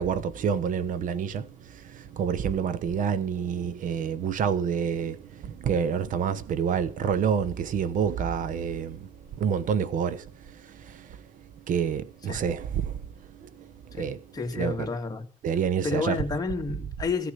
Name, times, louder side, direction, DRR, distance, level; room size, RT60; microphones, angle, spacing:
voice 1, 0.0-9.1 9.4-11.2 11.7-13.0 13.3-14.2 14.6-14.9 15.4-16.2, right 7 dB, 65° right, 1.0 m, -28 dB
voice 2, 13.9-15.3 15.8-17.3, left 4 dB, 25° left, 2.5 m, -30 dB
15.5 x 6.6 x 9.2 m
cardioid pair, 115°, 15 cm